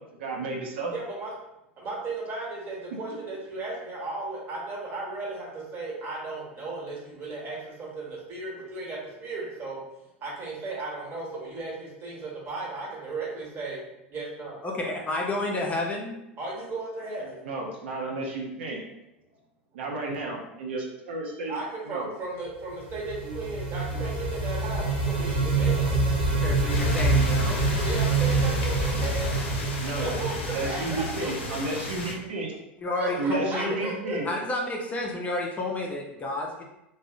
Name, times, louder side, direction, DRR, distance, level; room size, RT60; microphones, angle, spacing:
voice 1, 0.2-0.9 17.4-18.8 19.7-21.5 21.9-22.1 29.8-30.2 30.5-32.5 33.1-34.3, right 2 dB, 75° right, -2 dB, 0.5 m, -32 dB
voice 2, 0.9-1.3 1.8-9.8 10.2-13.8 14.1-14.6 16.4-17.4 21.5-26.0 27.8-29.4 30.0-31.8 32.9-34.2, right 3 dB, 35° right, -4 dB, 1.1 m, -35 dB
voice 3, 14.6-16.2 26.3-27.6 32.8-33.7 34.2-36.6, left 2 dB, 20° left, -1 dB, 0.4 m, -30 dB
sound 1, 22.8-31.5, right 3 dB, 15° right, 0.9 m, -26 dB
sound 2, 26.7-32.1, left 2 dB, 75° left, 0.5 m, -35 dB
2.7 x 2.0 x 2.4 m, 0.87 s
hypercardioid pair, 90°, 6 cm